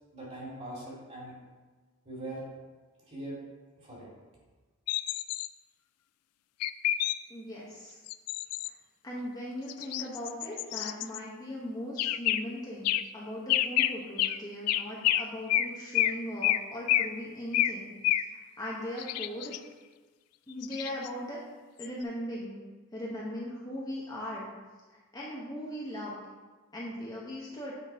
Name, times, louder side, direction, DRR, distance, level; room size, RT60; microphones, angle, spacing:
voice 1, 0.1-1.3 2.0-2.4 3.1-3.4 3.8-4.1, right 1 dB, 30° right, -5 dB, 2.3 m, -41 dB
sound 1, 4.9-5.5 6.6-7.2 8.1-8.7 9.7-11.2 12.0-12.4 12.8-13.0 13.5-13.9 14.2-14.4 14.7-15.2 15.5-15.7 15.9-16.1 16.4-16.6 16.9-17.1 17.5-17.7 18.0-18.3 19.0-19.6 20.6-21.1 21.8-21.9, left 13 dB, 85° left, 0.3 m, -28 dB
voice 2, 7.3-8.0 9.0-19.7 20.5-21.4 21.8-22.6 22.9-24.5 24.9-26.2 26.7-27.7, left 1 dB, 15° left, -5 dB, 0.9 m, -39 dB
8.2 x 3.9 x 4.6 m, 1.3 s
head